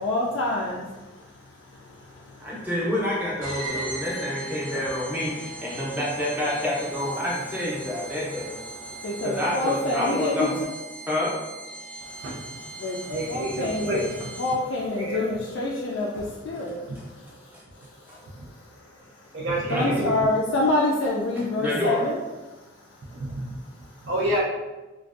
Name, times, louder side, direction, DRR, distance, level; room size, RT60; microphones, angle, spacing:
voice 1, 0.0-0.8 1.3-2.7 7.8-10.5 12.0-14.1 14.4-22.2 22.5-24.1, left 2 dB, 65° left, -3 dB, 0.3 m, -29 dB
voice 2, 2.4-8.6 9.2-10.6 11.1-11.3 17.5-17.6 18.1-18.2 19.7-19.9 21.6-22.1, left 1 dB, 10° right, -5 dB, 0.5 m, -28 dB
voice 3, 3.4-3.8 12.2-12.4 13.1-14.2 15.0-15.3 18.4-18.5 19.3-20.1 23.1-23.6 24.0-24.4, right 1 dB, 65° right, -6 dB, 0.4 m, -29 dB
sound 1, 3.4-14.8, right 2 dB, 85° right, 1.1 m, -39 dB
2.4 x 2.2 x 2.3 m, 1.1 s
head